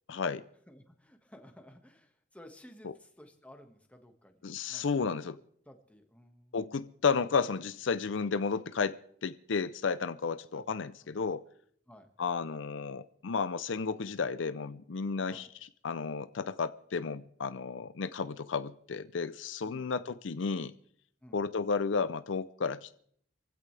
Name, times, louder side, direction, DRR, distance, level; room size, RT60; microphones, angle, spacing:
voice 1, 0.1-0.4 4.4-5.4 6.5-11.4 12.2-20.7 21.3-23.0, left 5 dB, 75° left, 0.6 m, -33 dB
voice 2, 0.7-5.3 5.6-6.6 10.5-10.7 11.0-11.3 11.9-12.1 15.3-15.5 19.6-19.9 21.2-21.4, equal, 5° left, 1.7 m, -55 dB
23.5 x 16.0 x 3.4 m
head